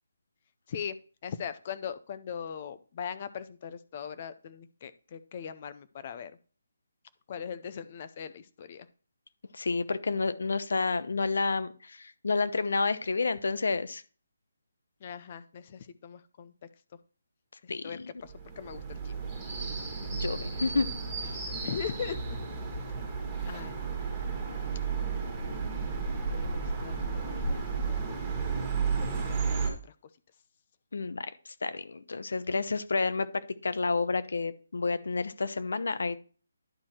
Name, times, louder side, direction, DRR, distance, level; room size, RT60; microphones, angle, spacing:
voice 1, 1.2-6.3 7.3-8.9 15.0-16.5 17.6-19.1 21.5-22.2 23.5-24.0 26.1-28.0 29.0-29.9, left 7 dB, 25° left, 12 dB, 0.5 m, -40 dB
voice 2, 9.5-14.0 17.7-17.8 20.1-20.9 21.2-21.3 30.9-31.3 31.6-36.2, left 4 dB, 65° left, 13 dB, 0.9 m, -30 dB
sound 1, 18.2-29.7, right 5 dB, 10° right, 1.6 m, -33 dB
11.0 x 4.7 x 4.3 m, 0.37 s
hypercardioid pair, 180°, 0 cm